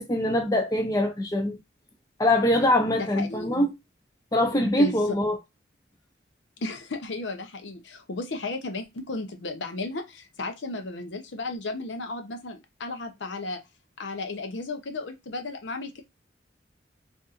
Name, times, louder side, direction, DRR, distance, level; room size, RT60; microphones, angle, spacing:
voice 1, 0.0-1.6 2.2-3.7 4.3-5.4, left 1 dB, 20° left, 0.6 m, -23 dB
voice 2, 3.0-3.7 4.5-5.0 6.6-13.6 14.0-16.0, left 2 dB, 75° left, 0.7 m, -34 dB
4.0 x 2.6 x 2.4 m
head